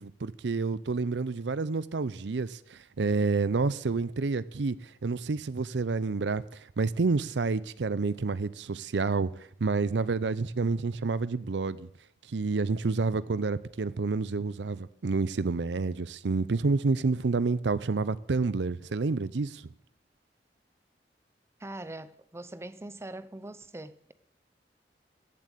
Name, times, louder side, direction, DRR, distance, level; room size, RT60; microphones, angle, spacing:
voice 1, 0.0-4.8 5.0-11.9 12.3-19.6, right 4 dB, 85° right, 0.6 m, -29 dB
voice 2, 21.6-24.1, right 1 dB, 15° right, 0.6 m, -42 dB
15.0 x 7.8 x 8.2 m
head